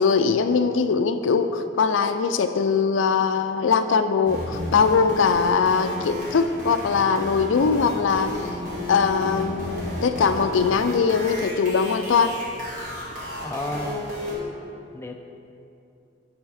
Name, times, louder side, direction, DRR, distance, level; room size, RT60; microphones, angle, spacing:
voice 1, 0.0-8.4 8.9-12.4, left 5 dB, 85° left, 9 dB, 0.4 m, -21 dB
sound 1, 4.2-14.3, left 1 dB, 45° right, 1.7 m, -33 dB
voice 2, 13.4-14.2 14.9-15.2, left 2 dB, 15° left, 4 dB, 0.3 m, -32 dB
9.8 x 3.5 x 4.8 m, 2.7 s
head